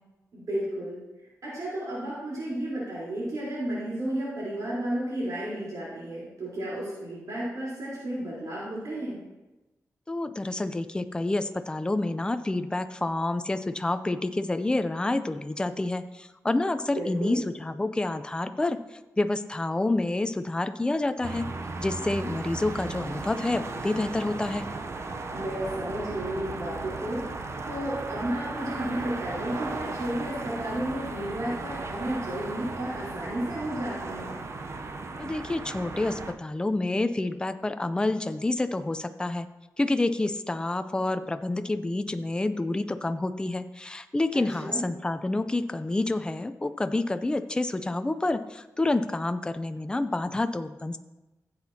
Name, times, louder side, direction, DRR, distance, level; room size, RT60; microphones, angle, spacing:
voice 1, 0.3-1.0 1.4-9.2 16.9-17.4 25.3-27.2 27.7-34.3 44.3-44.9, right 1 dB, 70° right, -8 dB, 3.9 m, -32 dB
voice 2, 10.1-18.8 19.2-21.5 21.8-24.7 35.2-39.5 39.8-51.0, left 2 dB, 15° left, 10 dB, 0.5 m, -28 dB
sound 1, 21.2-36.3, right 3 dB, 45° right, 0.7 m, -36 dB
15.5 x 8.0 x 2.9 m, 1.1 s
wide cardioid pair, 135°, 6 cm